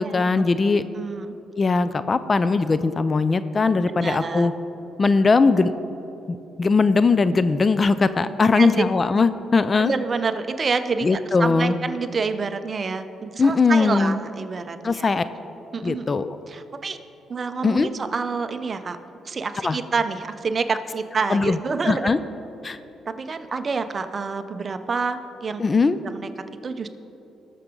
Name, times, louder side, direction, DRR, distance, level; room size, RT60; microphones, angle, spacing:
voice 1, 0.0-0.8 1.6-4.5 5.0-5.7 6.3-9.9 11.0-11.8 13.4-14.2 14.8-15.2 15.8-16.4 17.6-17.9 19.6-19.8 21.3-21.6 21.9-22.2 22.6-22.8 25.6-26.0, left 4 dB, 35° left, 13 dB, 0.4 m, -20 dB
voice 2, 1.0-1.4 3.9-4.5 8.6-8.9 9.8-15.1 15.7-16.1 16.5-17.0 17.3-19.0 19.2-22.1 23.1-25.6 26.0-26.3 26.6-26.9, right 4 dB, 40° right, 9 dB, 0.7 m, -27 dB
19.0 x 6.8 x 3.8 m, 3.0 s
cardioid pair, 90°, 0 cm